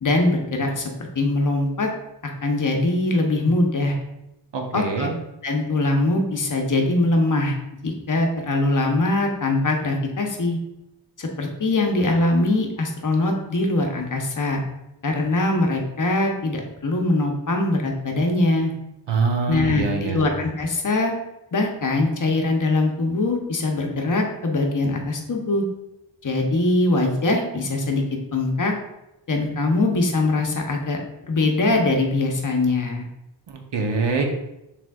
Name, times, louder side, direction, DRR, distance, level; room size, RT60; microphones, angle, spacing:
voice 1, 0.0-1.9 2.4-4.0 4.7-5.1 5.4-7.6 7.8-10.6 11.2-14.6 15.0-18.7 19.5-21.1 21.5-25.6 26.2-28.0 28.3-28.7 29.3-31.0 31.2-33.1, left 2 dB, 40° left, 2 dB, 0.8 m, -22 dB
voice 2, 4.5-5.1 19.1-20.2 33.5-34.2, right 4 dB, 65° right, 3 dB, 0.9 m, -24 dB
6.0 x 3.4 x 2.3 m, 0.90 s
wide cardioid pair, 110°, 46 cm